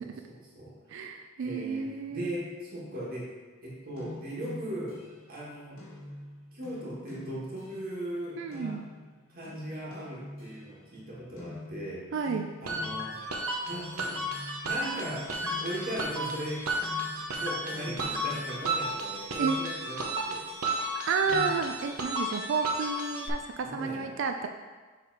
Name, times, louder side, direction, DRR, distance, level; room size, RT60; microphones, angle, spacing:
voice 1, 0.0-0.7 1.4-3.3 3.6-5.0 5.3-5.8 6.5-8.8 9.3-12.1 12.6-13.1 13.6-14.3 14.6-15.3 15.6-16.7 17.3-20.4 20.8-21.6 23.6-24.1, equal, 45° right, -6 dB, 1.6 m, -38 dB
voice 2, 0.9-2.3 8.4-8.8 12.1-12.5 19.4-19.6 21.1-24.5, right 5 dB, 60° right, 5 dB, 0.4 m, -31 dB
sound 1, 4.0-11.1 11.4-13.7 14.1-16.4 16.8-18.9, left 2 dB, 65° left, 1.8 m, -46 dB
sound 2, 12.7-23.3, right 1 dB, 85° right, 0.9 m, -33 dB
7.0 x 3.4 x 4.6 m, 1.3 s
head